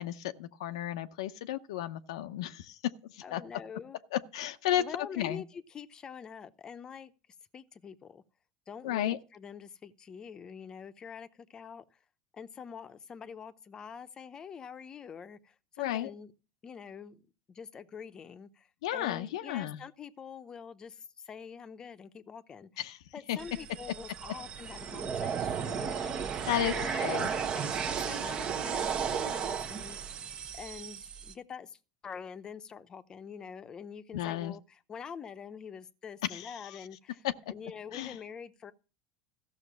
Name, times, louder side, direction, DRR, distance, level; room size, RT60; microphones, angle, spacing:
voice 1, 0.0-2.8 3.1-3.4 4.1-4.8 5.2-5.4 8.8-9.2 15.8-16.1 18.8-19.8 22.8-23.0 23.3-23.4 26.5-27.3 34.1-34.5 36.3-36.5 37.2-37.3 37.9-38.2, left 12 dB, 85° left, 0.7 m, -33 dB
voice 2, 3.2-4.0 4.8-7.1 7.5-8.2 8.7-12.0 12.3-16.3 16.6-17.2 17.5-22.8 23.1-30.3 30.5-38.7, left 6 dB, 25° left, 0.8 m, -45 dB
sound 1, 23.4-31.3, right 7 dB, 35° right, 0.9 m, -34 dB
14.0 x 6.4 x 6.1 m
supercardioid pair, 125°, 3 cm